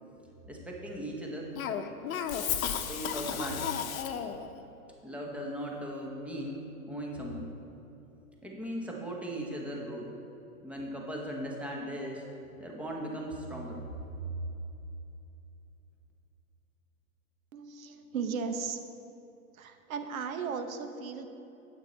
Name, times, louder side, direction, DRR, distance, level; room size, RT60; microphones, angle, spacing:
voice 1, 0.5-1.5 2.7-3.8 5.0-7.5 8.4-10.1 10.6-12.2 12.6-13.8, equal, 5° right, -1 dB, 0.9 m, -38 dB
Cough, 1.6-4.5, left 8 dB, 70° left, 0.8 m, -33 dB
voice 2, 17.5-18.8 19.5-21.3, right 5 dB, 70° right, 7 dB, 1.1 m, -36 dB
9.1 x 8.2 x 3.9 m, 2.9 s
hypercardioid pair, 140°, 43 cm